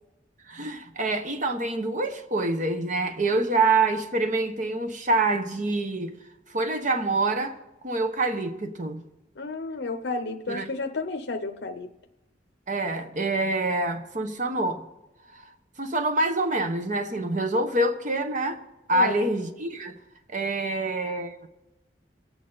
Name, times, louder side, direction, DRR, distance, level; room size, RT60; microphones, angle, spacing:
voice 1, 0.5-6.1 6.5-7.6 7.8-9.0 10.5-10.7 12.7-14.9 15.3-15.4 15.8-18.6 18.9-19.9 20.3-21.5, right 2 dB, 45° right, 1.0 m, -26 dB
voice 2, 9.4-11.9 18.9-19.3, left 3 dB, 70° left, 0.7 m, -32 dB
25.0 x 8.8 x 4.0 m
head